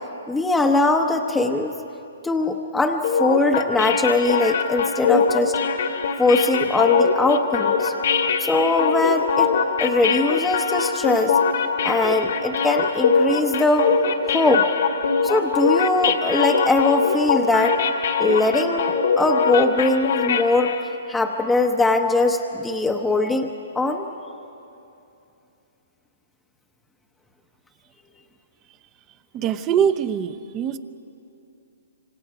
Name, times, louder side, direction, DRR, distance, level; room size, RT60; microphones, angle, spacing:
voice 1, 0.3-1.7 2.2-5.5 6.2-7.9 8.4-9.5 9.8-11.4 11.8-13.9 14.3-14.7 15.2-17.8 18.2-20.7 21.1-23.5 23.7-24.1, left 2 dB, 5° left, 3 dB, 0.9 m, -21 dB
sound 1, 3.0-20.9, left 5 dB, 65° left, 2.1 m, -22 dB
voice 2, 29.3-30.8, right 8 dB, 25° right, 11 dB, 0.8 m, -23 dB
26.0 x 25.5 x 5.0 m, 2.7 s
hypercardioid pair, 140°, 0 cm